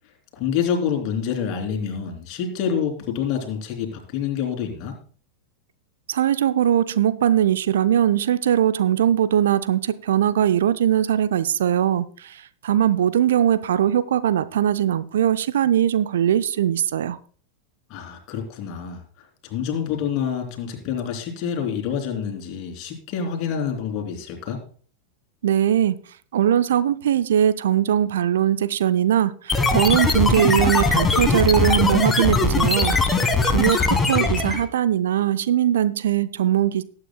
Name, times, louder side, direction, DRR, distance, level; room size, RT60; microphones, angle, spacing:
voice 1, 0.3-4.9 17.9-19.0 19.4-24.6, left 7 dB, 40° left, 3.0 m, -27 dB
voice 2, 6.1-17.2 25.4-26.0 26.3-32.9 33.4-36.8, right 10 dB, 60° right, 0.5 m, -20 dB
sound 1, 29.5-34.7, left 3 dB, 15° left, 1.5 m, -20 dB
19.5 x 8.8 x 2.2 m
figure-of-eight pair, 90°, 0 cm